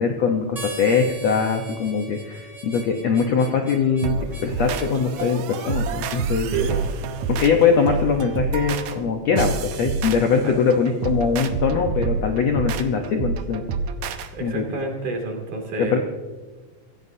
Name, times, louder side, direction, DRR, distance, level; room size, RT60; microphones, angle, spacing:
voice 1, 0.0-6.5 7.3-13.6 14.4-14.6 15.8-16.0, left 5 dB, 70° left, 3 dB, 1.6 m, -22 dB
Harmonica, 0.6-5.8, right 2 dB, 15° right, 1.2 m, -39 dB
sound 1, 4.0-14.3, right 5 dB, 75° right, 1.7 m, -28 dB
voice 2, 6.5-6.9 10.4-10.5 14.3-16.0, right 3 dB, 60° right, 2 dB, 3.9 m, -28 dB
25.5 x 17.0 x 2.7 m, 1.3 s
omnidirectional pair, 4.2 m